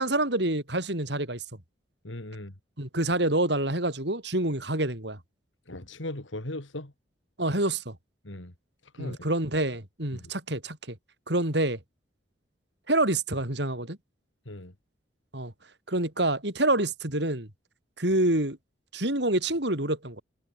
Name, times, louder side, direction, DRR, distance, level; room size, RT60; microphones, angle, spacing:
voice 1, 0.0-1.4 2.8-5.2 7.4-8.0 9.0-11.0 11.3-11.8 12.9-14.0 15.3-15.5 15.9-17.5 18.0-18.6 18.9-20.2, right 1 dB, 65° right, 5.4 m, -27 dB
voice 2, 2.0-2.5 5.7-6.9 8.2-8.5 8.9-9.2 10.2-10.3 14.5-14.7, left 1 dB, 90° left, 3.2 m, -38 dB
head